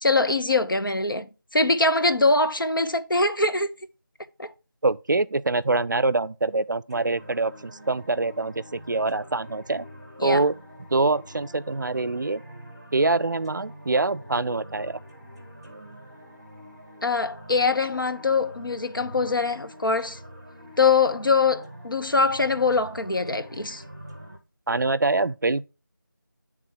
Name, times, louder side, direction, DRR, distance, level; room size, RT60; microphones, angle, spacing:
voice 1, 0.0-3.7 4.4-4.5 10.2-10.4 17.0-20.2 20.8-23.8, left 3 dB, 85° left, 0.9 m, -23 dB
voice 2, 4.8-9.9 10.2-10.5 10.9-12.4 12.9-15.0 24.7-25.7, right 3 dB, 65° right, 0.4 m, -24 dB
sound 1, 6.9-24.4, equal, 15° right, 0.9 m, -45 dB
8.0 x 3.6 x 4.7 m
figure-of-eight pair, 180°, 11 cm